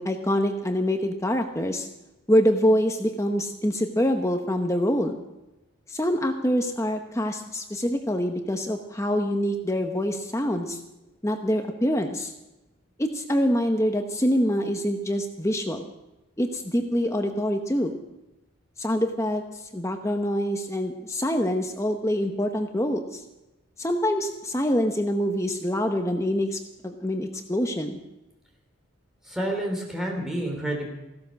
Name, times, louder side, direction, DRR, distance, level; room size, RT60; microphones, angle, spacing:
voice 1, 0.0-1.9 2.3-5.2 5.9-10.8 11.2-12.3 13.0-15.8 16.4-17.9 18.8-19.4 19.7-23.2 23.8-28.0, equal, 15° left, 5 dB, 0.9 m, -25 dB
voice 2, 29.3-30.9, right 1 dB, ahead, 0 dB, 2.9 m, -29 dB
15.5 x 12.5 x 6.3 m, 0.99 s
head